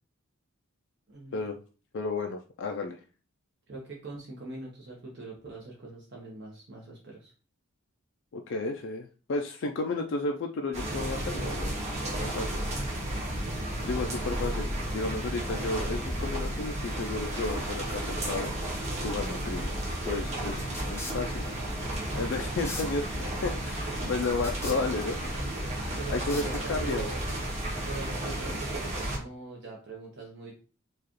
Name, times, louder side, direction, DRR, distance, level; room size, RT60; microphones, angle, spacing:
voice 1, 1.1-1.5 3.7-7.3 14.2-14.4 26.0-27.2 27.9-30.5, right 3 dB, 55° right, -2 dB, 0.9 m, -42 dB
voice 2, 1.9-3.0 8.3-11.8 12.0-12.6 13.8-18.5 19.0-21.5 21.8-25.8 26.1-27.1, left 3 dB, 60° left, 4 dB, 0.4 m, -33 dB
sound 1, 10.7-29.2, right 1 dB, 30° right, 1.1 m, -33 dB
sound 2, 20.7-27.0, left 2 dB, 10° left, 0.7 m, -44 dB
4.7 x 2.4 x 3.0 m, 0.36 s
head